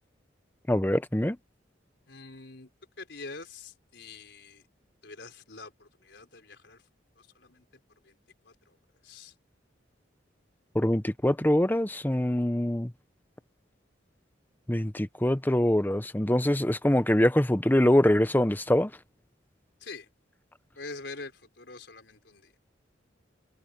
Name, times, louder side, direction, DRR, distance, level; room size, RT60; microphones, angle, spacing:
voice 1, 0.7-1.4 10.7-12.9 14.7-18.9, left 1 dB, 10° left, 0.8 m, -24 dB
voice 2, 2.1-2.7 3.0-4.6 5.0-6.8 7.1-7.7 8.0-8.2 8.4-8.8 9.0-9.3 19.8-20.1 20.7-22.5, left 3 dB, 65° left, 4.9 m, -45 dB
head